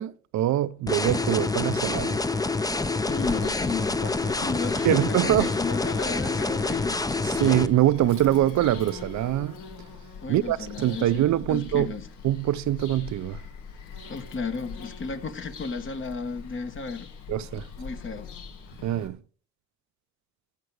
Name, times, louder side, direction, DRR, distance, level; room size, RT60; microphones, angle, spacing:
voice 1, 0.0-2.2 4.8-5.5 7.2-9.6 10.3-11.9 12.2-13.4 17.3-17.7 18.8-19.2, right 13 dB, 70° right, 0.6 m, -24 dB
sound 1, 0.9-7.7, left 3 dB, 10° left, 0.6 m, -27 dB
Bird vocalization bird call bird song, 3.1-19.1, left 5 dB, 85° left, 1.8 m, -42 dB
voice 2, 3.1-7.0 10.2-12.1 14.1-17.1 17.8-18.3, left 4 dB, 40° left, 1.3 m, -33 dB
15.0 x 6.0 x 4.7 m
cardioid pair, 90°, 30 cm